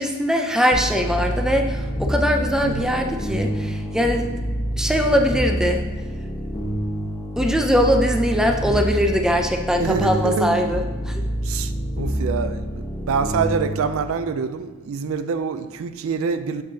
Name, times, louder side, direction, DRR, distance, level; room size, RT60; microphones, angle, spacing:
voice 1, 0.0-4.3 4.8-5.8 7.4-11.2, equal, 5° right, 4 dB, 0.5 m, -21 dB
sound 1, 0.7-14.0, equal, 20° left, 0.9 m, -27 dB
voice 2, 9.8-10.7 11.4-16.6, right 5 dB, 70° right, 10 dB, 0.4 m, -26 dB
7.5 x 6.3 x 2.7 m, 1.3 s
head